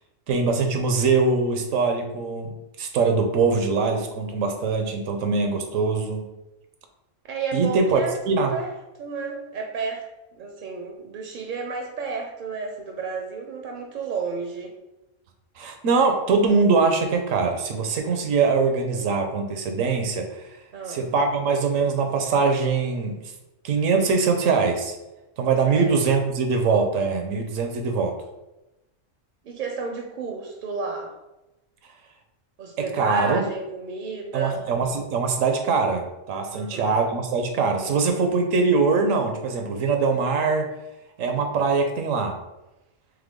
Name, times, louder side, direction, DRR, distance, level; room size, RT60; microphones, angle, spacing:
voice 1, 0.3-6.2 7.5-8.5 15.6-20.4 20.9-23.2 23.6-24.9 25.4-28.1 32.8-33.5 34.3-40.7 41.2-42.4, right 4 dB, 90° right, 4 dB, 1.1 m, -22 dB
voice 2, 7.3-8.2 8.5-8.7 9.0-10.1 10.3-14.7 20.7-21.1 25.7-25.9 29.4-31.1 32.6-34.6 36.5-37.0, right 5 dB, 60° right, 2 dB, 0.5 m, -32 dB
3.7 x 3.3 x 3.6 m, 0.98 s
omnidirectional pair, 1.3 m